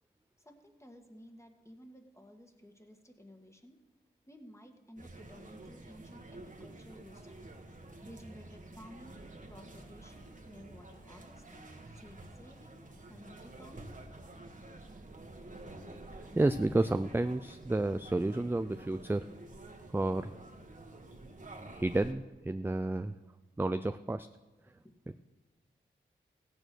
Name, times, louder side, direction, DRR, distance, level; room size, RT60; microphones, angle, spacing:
voice 1, 0.4-3.8 4.3-7.3 8.0-14.0 24.8-24.9, equal, 15° left, 4 dB, 2.0 m, -55 dB
sound 1, 5.0-22.1, right 2 dB, 40° right, 1.7 m, -50 dB
voice 2, 16.3-19.3 19.9-20.3 21.2-21.3 21.6-23.2 23.6-24.3, right 2 dB, 10° right, 11 dB, 0.4 m, -31 dB
16.0 x 9.0 x 6.3 m, 1.1 s
cardioid pair, 50°, 20 cm